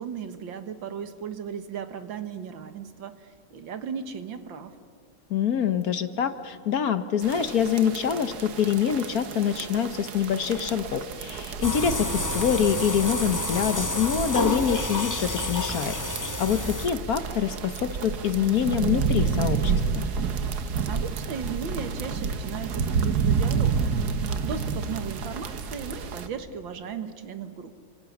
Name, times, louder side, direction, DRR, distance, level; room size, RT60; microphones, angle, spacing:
voice 1, 0.0-4.7 20.9-23.9 24.4-27.7, right 6 dB, 80° right, 10 dB, 2.1 m, -36 dB
voice 2, 5.3-16.0 16.4-20.1, left 8 dB, 55° left, 11 dB, 1.2 m, -25 dB
sound 1, 7.2-26.3, right 5 dB, 60° right, 1.7 m, -30 dB
sound 2, 11.6-17.2, left 2 dB, 25° left, 0.4 m, -30 dB
28.5 x 25.5 x 7.2 m, 2.1 s
omnidirectional pair, 2.1 m